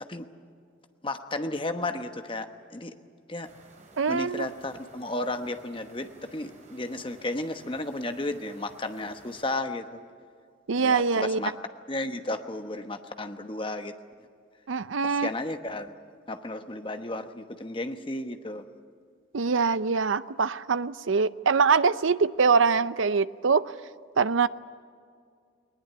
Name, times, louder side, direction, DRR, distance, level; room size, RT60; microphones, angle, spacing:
voice 1, 1.0-2.9 3.3-3.5 4.1-9.9 10.8-11.5 11.9-13.9 15.0-15.9 16.3-18.6, left 2 dB, 25° left, 7 dB, 1.1 m, -33 dB
sound 1, 3.4-9.6, right 2 dB, 35° right, 3.9 m, -54 dB
voice 2, 4.0-4.5 10.7-11.4 14.7-15.3 19.3-23.7 24.2-24.5, right 5 dB, 80° right, 16 dB, 0.6 m, -23 dB
20.0 x 20.0 x 9.4 m, 2.2 s
head